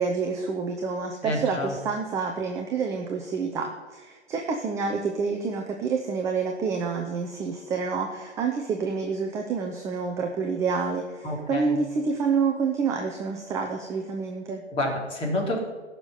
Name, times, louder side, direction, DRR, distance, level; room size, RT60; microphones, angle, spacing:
voice 1, 0.0-14.6, right 5 dB, 10° right, 3 dB, 0.7 m, -28 dB
voice 2, 1.2-1.7 11.2-11.7 14.7-15.6, left 1 dB, 15° left, -1 dB, 3.5 m, -28 dB
16.5 x 6.7 x 9.5 m, 1.3 s
figure-of-eight pair, 130°, 35 cm